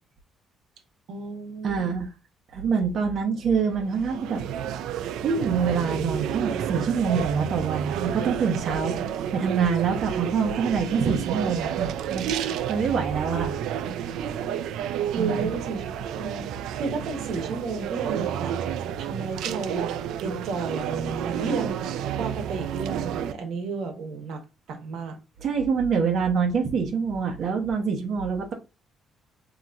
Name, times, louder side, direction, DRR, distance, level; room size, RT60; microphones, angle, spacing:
voice 1, 1.1-2.0 15.1-16.5 16.8-18.6 19.0-24.4 24.7-25.2, right 4 dB, 70° right, 1.1 m, -32 dB
voice 2, 1.6-2.1 2.5-4.4 5.2-8.9 9.3-12.3 12.7-13.5 15.1-15.5 25.4-28.5, right 6 dB, 45° right, 0.8 m, -25 dB
sound 1, 3.6-23.3, right 9 dB, 85° right, 0.3 m, -30 dB
5.6 x 2.9 x 2.5 m
cardioid pair, 150°, 0 cm